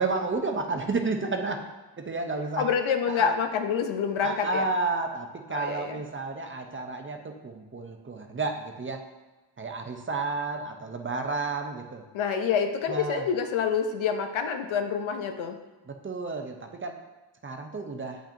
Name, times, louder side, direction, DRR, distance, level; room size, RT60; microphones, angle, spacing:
voice 1, 0.0-1.6 2.0-2.7 3.1-3.4 4.2-9.0 9.6-12.0 12.9-13.3 15.9-16.9 17.4-18.2, right 3 dB, 25° right, 4 dB, 0.5 m, -31 dB
voice 2, 2.6-4.7 5.5-6.0 12.1-15.6, left 7 dB, 90° left, 6 dB, 0.8 m, -27 dB
8.8 x 5.0 x 2.7 m, 1.1 s
wide cardioid pair, 150°, 46 cm